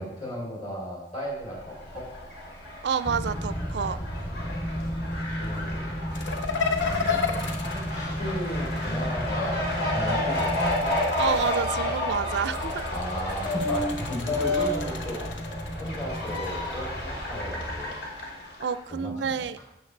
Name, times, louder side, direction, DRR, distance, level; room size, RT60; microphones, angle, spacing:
voice 1, 0.0-2.1 4.8-6.3 6.6-10.7 12.9-15.2 15.8-18.0 18.9-19.4, equal, 35° left, -4 dB, 3.2 m, -36 dB
Fowl, 1.4-18.8, left 1 dB, 60° left, 2.6 m, -32 dB
voice 2, 2.8-4.0 11.2-12.7 18.6-19.6, right 6 dB, 65° right, 15 dB, 0.4 m, -28 dB
sound 1, 3.0-17.8, left 1 dB, 10° left, 0.6 m, -33 dB
sound 2, 6.1-8.9 10.2-11.7 12.3-16.5, left 5 dB, 85° left, 0.9 m, -33 dB
12.5 x 7.7 x 3.3 m, 0.90 s
head